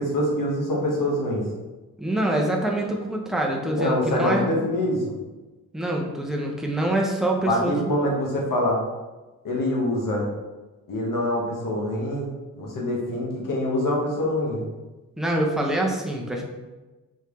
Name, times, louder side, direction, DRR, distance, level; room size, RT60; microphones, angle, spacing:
voice 1, 0.0-1.4 3.7-5.2 7.5-8.8 9.4-10.3 10.9-12.3 12.5-14.6, left 1 dB, 60° left, -2 dB, 1.5 m, -25 dB
voice 2, 2.0-4.5 5.7-7.9 15.2-16.4, right 1 dB, ahead, -1 dB, 0.9 m, -25 dB
4.5 x 3.2 x 3.1 m, 1.2 s
cardioid pair, 65°, 36 cm